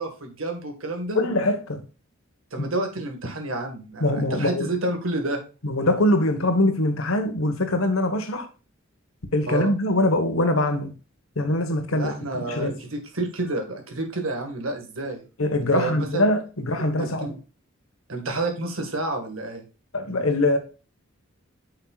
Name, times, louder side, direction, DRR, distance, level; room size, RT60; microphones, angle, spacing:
voice 1, 0.0-1.2 2.5-5.4 9.5-9.7 11.9-15.2 15.7-16.3 17.0-17.3 18.1-19.6, right 2 dB, 75° right, 1.8 m, -29 dB
voice 2, 1.1-1.8 2.6-2.7 4.0-4.7 5.6-8.5 9.3-10.9 11.4-12.1 12.5-12.7 15.4-17.3 19.9-20.6, left 1 dB, 90° left, 1.4 m, -23 dB
9.1 x 5.7 x 2.4 m
head